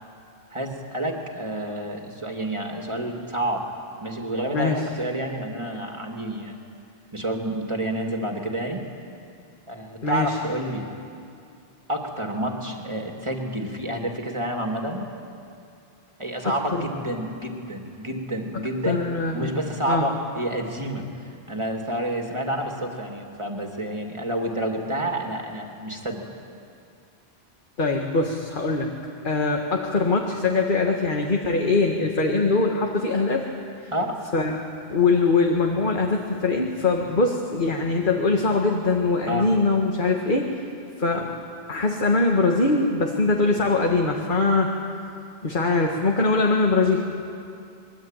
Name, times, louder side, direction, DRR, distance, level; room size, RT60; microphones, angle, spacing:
voice 1, 0.5-3.7 4.0-6.6 7.1-8.8 9.7-10.9 11.9-15.0 16.2-19.0 19.3-26.3 33.9-34.2 39.3-39.5, right 1 dB, 25° right, 2 dB, 2.6 m, -29 dB
voice 2, 10.0-10.4 16.4-16.9 18.8-19.5 19.9-20.1 27.8-28.9 29.2-33.4 33.8-33.9 34.3-34.6 34.9-40.6 41.0-41.4 41.7-44.7 45.4-47.0, left 3 dB, 50° left, 1 dB, 1.9 m, -22 dB
24.0 x 22.0 x 9.1 m, 2.5 s
omnidirectional pair, 1.1 m